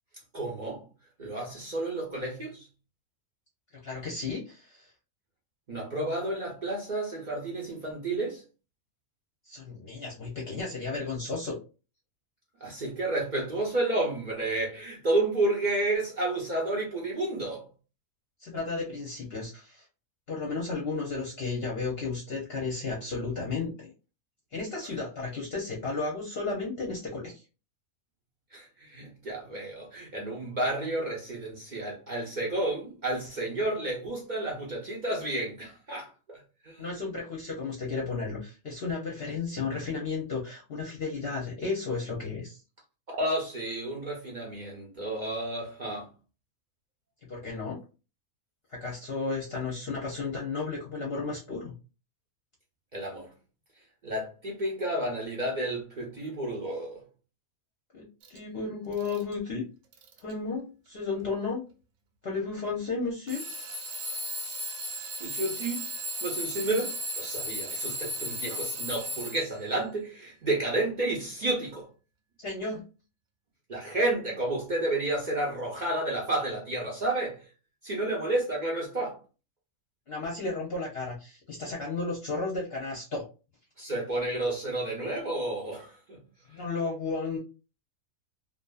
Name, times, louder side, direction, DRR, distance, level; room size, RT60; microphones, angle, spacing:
voice 1, 0.3-0.9 1.2-2.7 5.7-8.4 12.6-17.7 28.5-36.8 43.2-46.1 52.9-53.3 54.0-57.0 65.2-65.8 66.2-71.9 73.7-77.4 77.8-79.2 83.8-86.2, right 2 dB, 50° right, 0.6 m, -31 dB
voice 2, 3.8-4.9 9.5-11.6 18.4-19.8 20.3-23.9 24.5-27.4 36.8-42.6 47.3-47.8 48.7-51.7 57.9-59.6 60.2-61.6 62.2-63.4 72.4-72.8 80.1-83.2 86.5-87.4, left 4 dB, 55° left, 0.8 m, -33 dB
Alarm / Clock, 58.2-58.4 58.9-59.4 59.9-60.3 61.2-61.3 63.3-69.7, equal, 70° right, 0.9 m, -35 dB
2.6 x 2.4 x 2.3 m
omnidirectional pair, 1.4 m